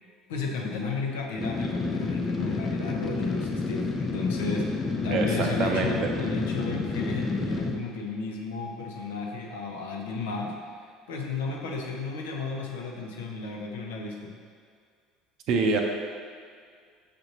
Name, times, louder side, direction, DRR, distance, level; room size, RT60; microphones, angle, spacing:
voice 1, 0.3-10.6 11.1-14.4, left 3 dB, 75° left, 0 dB, 0.6 m, -33 dB
sound 1, 1.4-7.8, left 3 dB, 35° left, 0.5 m, -30 dB
voice 2, 5.1-6.1 15.5-15.8, right 4 dB, 60° right, 2 dB, 0.5 m, -26 dB
6.6 x 2.6 x 2.9 m, 2.1 s
hypercardioid pair, 65°, 0 cm